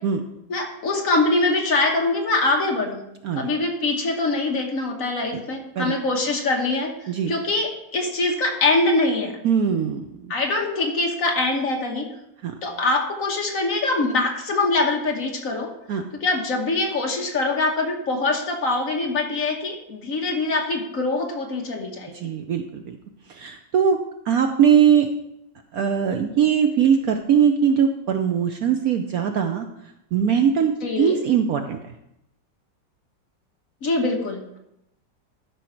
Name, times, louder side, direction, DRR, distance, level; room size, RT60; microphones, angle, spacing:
voice 1, 0.5-3.0 3.3-6.9 7.3-9.4 10.3-12.0 12.6-15.7 16.2-22.1 30.8-31.2 33.8-34.6, left 2 dB, 50° left, 2 dB, 1.5 m, -23 dB
voice 2, 9.4-10.3 12.4-12.5 15.9-16.0 22.1-23.0 23.3-24.0 24.3-25.1 25.7-29.7 30.1-31.8, right 7 dB, 65° right, 6 dB, 0.9 m, -21 dB
12.5 x 5.5 x 4.4 m, 0.83 s
omnidirectional pair, 2.0 m